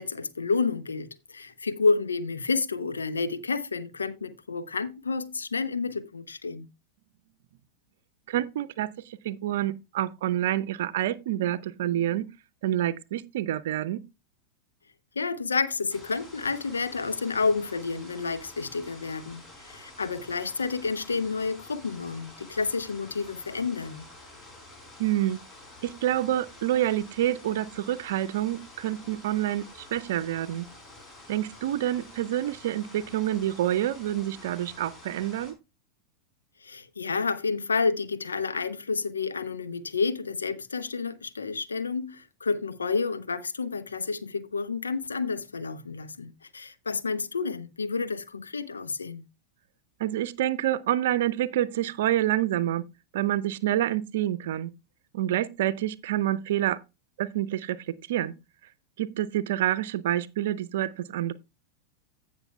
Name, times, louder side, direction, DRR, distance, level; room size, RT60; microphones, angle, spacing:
voice 1, 0.0-6.7 15.2-24.1 36.6-49.2, left 4 dB, 75° left, 0.7 m, -30 dB
voice 2, 8.3-12.3 12.6-14.0 25.0-25.4 25.8-30.7 31.3-35.5 50.0-52.8 53.1-54.7 55.1-56.8 57.2-58.3 59.0-61.3, right 13 dB, 55° right, 0.6 m, -27 dB
sound 1, 15.9-35.5, left 2 dB, 25° left, 4.1 m, -49 dB
16.0 x 6.1 x 2.3 m
figure-of-eight pair, 90°, 0 cm